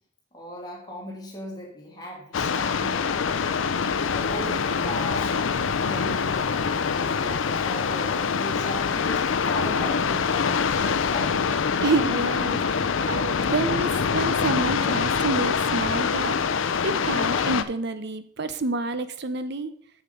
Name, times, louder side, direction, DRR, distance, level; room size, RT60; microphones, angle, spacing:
voice 1, 0.3-11.5, equal, 20° left, -2 dB, 2.6 m, -38 dB
sound 1, 2.3-17.6, left 6 dB, 70° left, 0.5 m, -25 dB
Water tap faucet, 4.0-12.5, left 3 dB, 40° left, 1.3 m, -48 dB
voice 2, 11.8-19.7, right 3 dB, 55° right, 12 dB, 0.7 m, -28 dB
7.3 x 6.9 x 5.2 m, 0.63 s
head